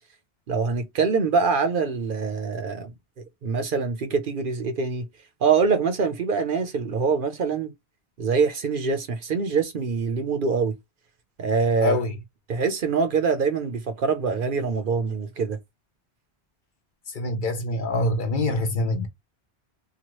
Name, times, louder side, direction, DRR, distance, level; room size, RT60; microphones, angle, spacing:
voice 1, 0.5-2.9 3.4-5.0 5.4-7.7 8.2-10.7 11.4-12.0 12.5-15.6, right 5 dB, 60° right, 0.8 m, -24 dB
voice 2, 11.8-12.1 17.1-19.1, left 2 dB, 55° left, 0.8 m, -25 dB
2.9 x 2.3 x 3.0 m
omnidirectional pair, 1.1 m